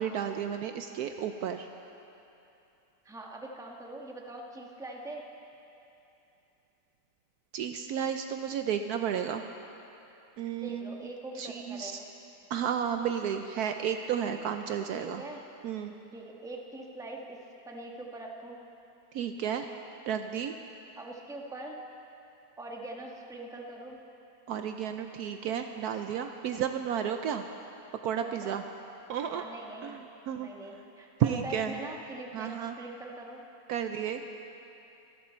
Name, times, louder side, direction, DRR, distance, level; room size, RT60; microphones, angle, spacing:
voice 1, 0.0-1.7 7.5-9.4 10.4-11.1 11.4-12.0 12.5-15.2 15.6-15.9 19.1-19.7 20.1-20.5 24.5-27.5 28.0-28.6 29.1-29.4 29.8-30.5 31.2-31.8 32.3-32.8 33.7-34.2, right 8 dB, 70° right, 7 dB, 1.0 m, -32 dB
voice 2, 3.0-5.2 10.5-12.1 14.9-15.4 16.1-17.4 17.6-18.6 21.0-21.8 22.6-24.0 28.2-28.6 29.3-30.0 30.4-33.4, right 2 dB, ahead, 0 dB, 1.1 m, -42 dB
25.5 x 11.5 x 4.4 m, 2.8 s
omnidirectional pair, 1.8 m